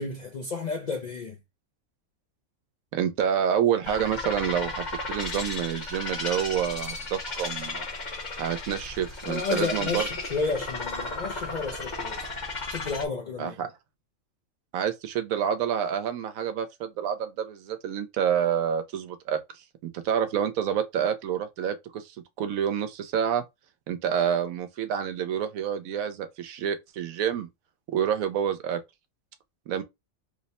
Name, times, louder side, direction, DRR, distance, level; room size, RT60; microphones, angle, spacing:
voice 1, 0.0-1.4 9.3-12.3 12.7-13.5, left 4 dB, 55° left, 0.4 m, -32 dB
voice 2, 2.9-7.9 8.4-10.1 13.4-13.7 14.7-19.4 19.8-23.4 23.9-27.5 27.9-28.8 29.7-29.8, right 8 dB, 85° right, 1.0 m, -28 dB
sound 1, 3.8-13.1, left 3 dB, 40° left, 0.9 m, -34 dB
3.0 x 2.1 x 4.1 m
omnidirectional pair, 1.4 m